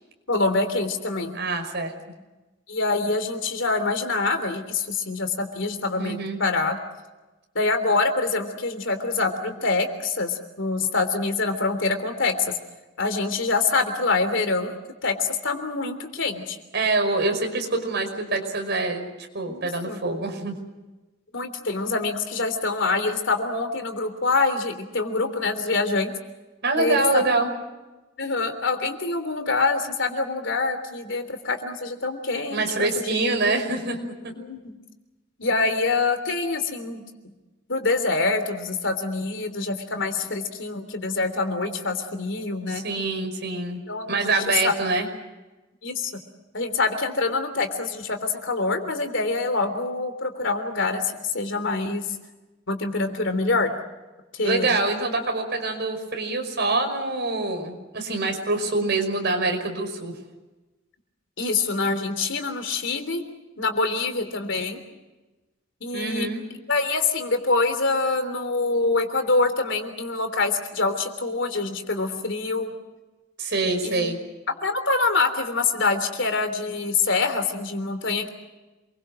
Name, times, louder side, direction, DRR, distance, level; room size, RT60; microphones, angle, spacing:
voice 1, 0.3-1.4 2.7-6.8 7.5-12.5 13.0-16.6 19.4-19.6 19.9-20.0 21.3-26.1 26.8-27.2 28.2-33.1 34.4-34.7 35.4-37.0 37.7-42.8 43.9-44.4 44.6-44.7 45.8-46.1 46.5-52.0 52.7-53.8 54.3-54.8 61.4-63.2 63.6-64.8 65.8-66.3 66.7-72.7 73.8-74.1 74.6-78.3, left 3 dB, 65° left, 7 dB, 3.3 m, -25 dB
voice 2, 1.3-1.9 6.0-6.4 16.7-19.1 19.3-20.5 26.6-27.5 32.5-34.0 34.2-34.3 42.7-43.8 44.1-45.1 54.4-60.1 65.9-66.4 73.4-74.2, right 3 dB, 55° right, 4 dB, 5.4 m, -25 dB
28.0 x 23.0 x 6.2 m, 1.1 s
head